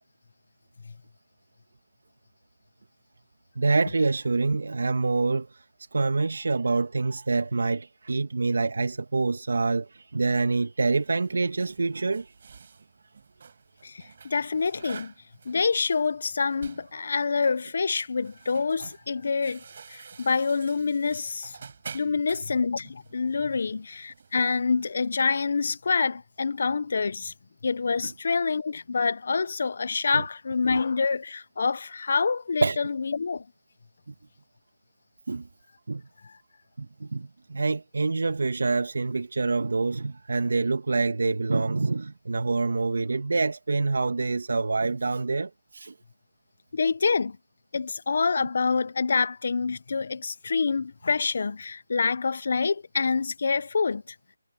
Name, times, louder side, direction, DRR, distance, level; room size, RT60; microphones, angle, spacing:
voice 1, 3.6-5.5 5.9-12.3 30.1-30.2 32.6-32.8 35.3-35.4 35.9-36.0 36.8-45.9, right 3 dB, 60° right, 1.7 m, -26 dB
sound 1, 10.8-24.4, right 5 dB, 40° right, 7.1 m, -49 dB
voice 2, 13.8-15.1 15.5-19.6 19.9-21.6 21.9-27.3 27.6-33.4 36.2-36.3 46.7-47.4 47.7-54.2, left 4 dB, 45° left, 0.6 m, -26 dB
figure-of-eight pair, 170°, 0 cm